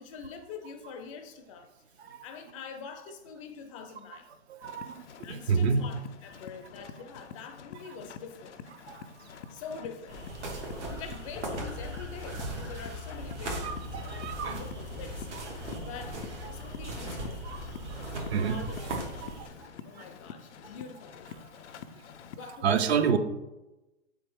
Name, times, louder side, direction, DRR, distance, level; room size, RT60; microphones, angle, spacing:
voice 1, 0.0-1.7 2.2-4.3 5.2-6.0 6.2-8.6 9.5-10.2 10.9-15.3 15.6-17.7 18.4-19.4 19.8-21.4 22.4-22.8, left 5 dB, 30° left, 5 dB, 0.4 m, -45 dB
sound 1, 4.6-22.6, left 7 dB, 90° left, 0.5 m, -48 dB
voice 2, 4.6-5.0 5.3-5.9 8.9-9.0 13.5-14.6 15.3-15.4 16.4-16.5 17.4-17.6 18.2-19.0 22.4-23.2, right 6 dB, 65° right, 9 dB, 0.6 m, -29 dB
sound 2, 10.1-19.5, right 1 dB, 85° right, 1.4 m, -38 dB
4.1 x 3.4 x 3.4 m, 0.99 s
hypercardioid pair, 130°, 34 cm